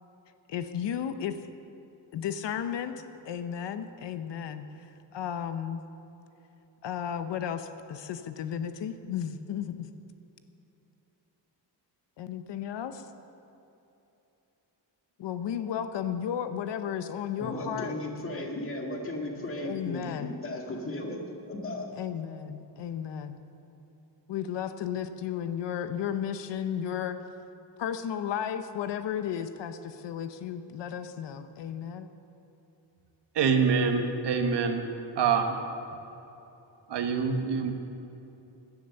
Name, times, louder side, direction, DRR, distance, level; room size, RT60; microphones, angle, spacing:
voice 1, 0.5-1.3 2.1-2.9 3.3-4.9 5.1-5.8 6.8-9.9 12.2-13.1 15.2-17.9 19.6-20.3 21.9-23.4 24.3-27.2 27.8-32.1, left 9 dB, 70° left, 10 dB, 0.9 m, -34 dB
voice 2, 17.4-21.2 21.5-21.9, left 1 dB, 30° left, 1 dB, 1.9 m, -35 dB
voice 3, 33.3-34.9 35.2-35.6 36.9-37.7, right 5 dB, 70° right, 5 dB, 1.4 m, -25 dB
17.0 x 10.5 x 6.6 m, 2.9 s
wide cardioid pair, 175°, 44 cm